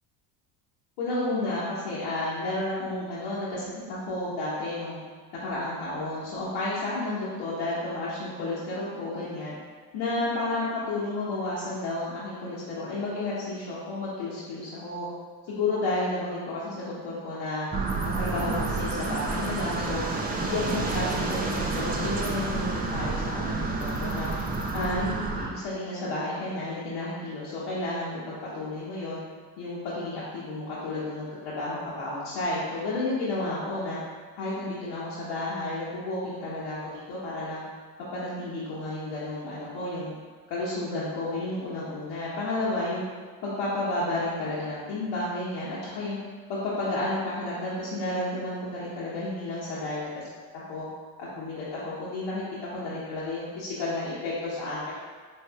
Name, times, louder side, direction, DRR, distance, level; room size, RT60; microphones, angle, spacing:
voice 1, 1.0-5.0 5.3-9.5 9.9-15.1 15.5-17.7 18.0-20.0 20.4-24.3 24.7-29.2 29.6-34.0 34.4-37.6 38.1-40.1 40.5-43.0 43.4-46.2 46.5-50.3 50.5-50.9 51.2-54.9, left 2 dB, 65° left, -9 dB, 1.1 m, -31 dB
sound 1, 17.7-25.5, right 3 dB, 20° right, 0.4 m, -29 dB
4.3 x 3.1 x 2.4 m, 1.5 s
hypercardioid pair, 70°, 49 cm